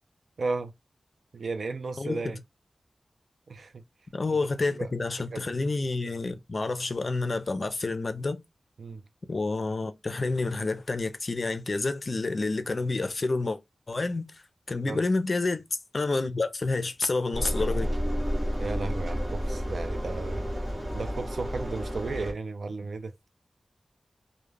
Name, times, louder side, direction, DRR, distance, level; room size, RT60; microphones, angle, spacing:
voice 1, 0.4-0.7 1.3-2.4 3.5-3.8 4.3-4.4 4.7-4.9 5.3-5.4 8.8-9.0 14.8-15.0 18.6-20.5 20.9-23.1, right 3 dB, 85° right, 0.4 m, -34 dB
voice 2, 4.1-8.4 9.3-13.6 13.9-14.4 14.7-15.6 15.9-17.9, left 3 dB, 50° left, 0.5 m, -29 dB
Engine, 17.3-22.3, equal, 35° right, 1.1 m, -31 dB
2.3 x 2.1 x 3.1 m
wide cardioid pair, 65°, 0 cm